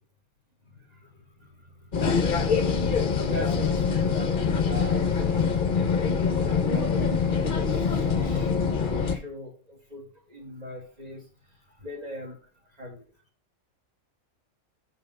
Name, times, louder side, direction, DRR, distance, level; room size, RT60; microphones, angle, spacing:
voice 1, 0.6-2.3 2.6-6.3 6.7-12.4 12.6-13.0, equal, 30° right, 1 dB, 2.4 m, -42 dB
sound 1, 1.9-9.2, left 5 dB, 40° left, 0.9 m, -24 dB
6.0 x 5.5 x 6.4 m, 0.39 s
omnidirectional pair, 1.4 m